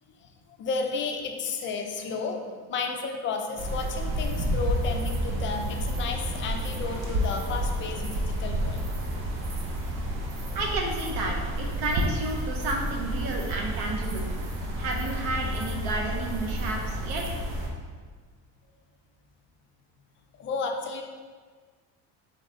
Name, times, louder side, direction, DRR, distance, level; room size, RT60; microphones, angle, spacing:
voice 1, 0.2-8.8 20.4-21.0, left 4 dB, 30° left, 3 dB, 0.4 m, -32 dB
sound 1, 3.6-17.7, equal, 35° right, 0.6 m, -30 dB
voice 2, 10.5-14.3 14.8-17.2, right 2 dB, 65° right, 1 dB, 0.9 m, -31 dB
3.9 x 3.3 x 3.8 m, 1.5 s
cardioid pair, 155°, 38 cm